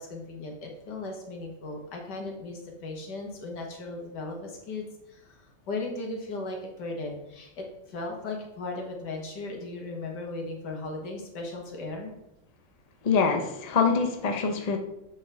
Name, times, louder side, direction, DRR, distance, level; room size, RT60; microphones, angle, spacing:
voice 1, 0.0-12.1, left 2 dB, 65° left, 1 dB, 2.0 m, -37 dB
voice 2, 13.0-14.8, left 5 dB, 90° left, 4 dB, 0.3 m, -24 dB
7.7 x 5.9 x 3.5 m, 0.88 s
omnidirectional pair, 2.0 m